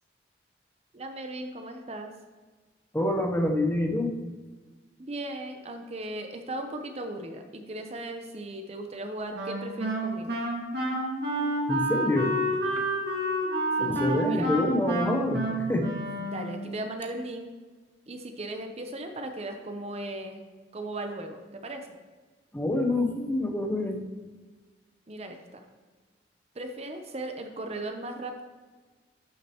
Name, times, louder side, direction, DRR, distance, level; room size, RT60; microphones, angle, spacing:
voice 1, 0.9-2.1 5.1-10.4 13.8-14.5 16.3-17.5 18.1-20.4 20.7-21.9 25.1-25.6 26.5-28.4, right 1 dB, 35° right, 5 dB, 0.7 m, -37 dB
voice 2, 2.9-4.1 11.7-12.3 13.8-15.4 15.7-16.0 22.5-24.0, left 1 dB, 10° left, 3 dB, 0.8 m, -26 dB
Wind instrument woodwind instrument, 9.3-16.8, right 1 dB, 65° right, 2.0 m, -29 dB
11.5 x 6.4 x 3.0 m, 1.3 s
head